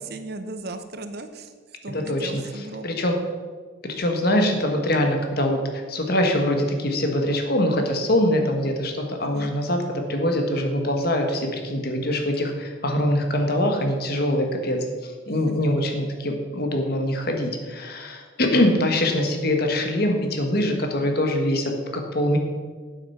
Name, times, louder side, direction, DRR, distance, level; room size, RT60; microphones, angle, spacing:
voice 1, 0.0-1.5 1.8-2.9 9.2-9.5 15.3-15.7, right 2 dB, 55° right, 9 dB, 0.8 m, -36 dB
voice 2, 1.9-3.2 3.8-9.8 10.1-22.4, left 1 dB, 55° left, 3 dB, 1.4 m, -23 dB
8.9 x 7.7 x 5.8 m, 1.5 s
head